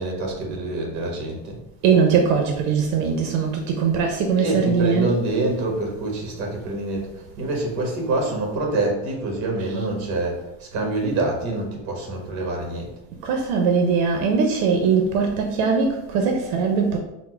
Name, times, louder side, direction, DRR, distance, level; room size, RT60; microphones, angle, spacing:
voice 1, 0.0-1.6 4.4-12.9, right 2 dB, 45° right, 1 dB, 1.2 m, -26 dB
voice 2, 1.8-5.1 13.2-17.0, right 5 dB, 80° right, 3 dB, 0.7 m, -21 dB
4.2 x 2.1 x 4.3 m, 0.93 s
cardioid pair, 175°, 40 cm